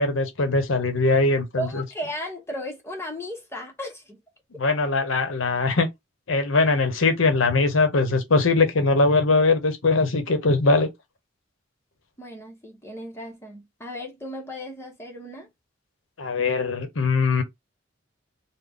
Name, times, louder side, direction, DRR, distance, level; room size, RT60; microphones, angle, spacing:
voice 1, 0.0-1.8 4.6-5.9 6.3-10.9 16.2-17.4, left 3 dB, 80° left, 0.9 m, -21 dB
voice 2, 1.6-4.2 12.2-15.5, equal, 15° left, 0.8 m, -35 dB
3.8 x 2.1 x 3.4 m
head